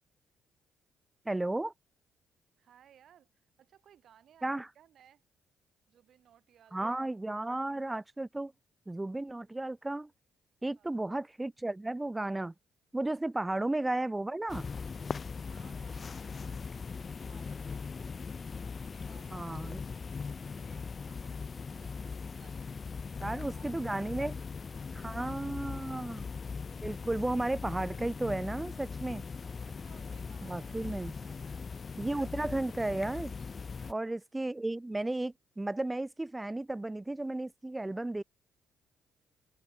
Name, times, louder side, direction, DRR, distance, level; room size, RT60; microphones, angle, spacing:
voice 1, 1.3-1.7 4.4-4.7 6.7-8.5 8.9-10.1 10.6-12.5 12.9-14.7 19.3-19.8 23.2-24.3 24.9-26.2 26.8-29.2 30.4-31.1 31.9-33.3 33.9-38.2, right 2 dB, 15° right, 0.4 m, -34 dB
voice 2, 2.6-5.2 5.9-7.1 10.8-11.2 13.5-13.7 15.4-18.2 18.8-22.7 23.1-25.2 25.4-26.1 29.7-32.2 33.7-34.2, right 9 dB, 65° right, 2.6 m, -63 dB
sound 1, 14.5-33.9, left 5 dB, 40° left, 0.6 m, -40 dB
supercardioid pair, 60°, 0 cm